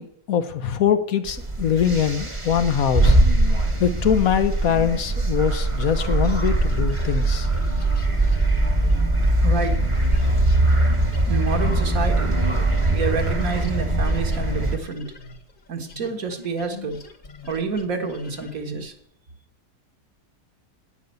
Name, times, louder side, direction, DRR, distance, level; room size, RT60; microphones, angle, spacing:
voice 1, 0.0-3.2 3.8-7.5, left 8 dB, 65° left, 10 dB, 1.2 m, -22 dB
sound 1, 1.3-14.8, right 1 dB, 20° right, 1.2 m, -21 dB
sound 2, 6.2-12.5 12.8-19.0, left 3 dB, 35° left, 1.4 m, -42 dB
voice 2, 9.4-9.8 11.3-12.3 12.9-15.1 15.7-17.0 17.4-18.9, right 4 dB, 60° right, 5 dB, 1.9 m, -28 dB
10.5 x 9.4 x 6.9 m, 0.68 s
omnidirectional pair, 1.7 m